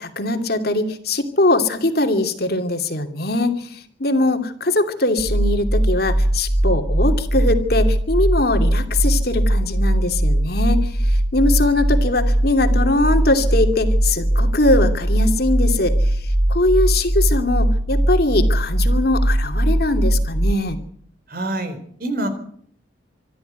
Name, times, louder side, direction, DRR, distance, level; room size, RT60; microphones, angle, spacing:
voice 1, 0.0-16.2 16.5-20.8, left 2 dB, 50° left, 6 dB, 2.7 m, -21 dB
sound 1, 5.2-20.5, right 1 dB, 20° right, 2.3 m, -19 dB
voice 2, 21.3-22.3, right 1 dB, 50° right, 10 dB, 4.2 m, -26 dB
26.0 x 12.5 x 9.3 m, 0.63 s
head